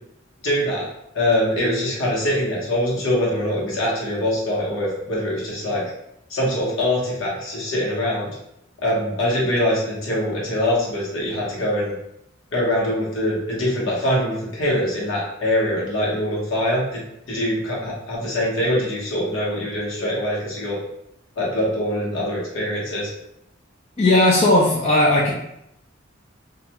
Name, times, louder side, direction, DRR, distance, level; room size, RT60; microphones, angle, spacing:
voice 1, 0.4-0.9 1.1-5.8 6.3-8.3 8.8-11.9 12.5-17.0 17.3-20.8 21.4-23.1, left 1 dB, 75° left, -5 dB, 1.0 m, -23 dB
voice 2, 24.0-25.3, left 1 dB, 30° left, -5 dB, 0.4 m, -16 dB
2.4 x 2.2 x 2.9 m, 0.79 s
head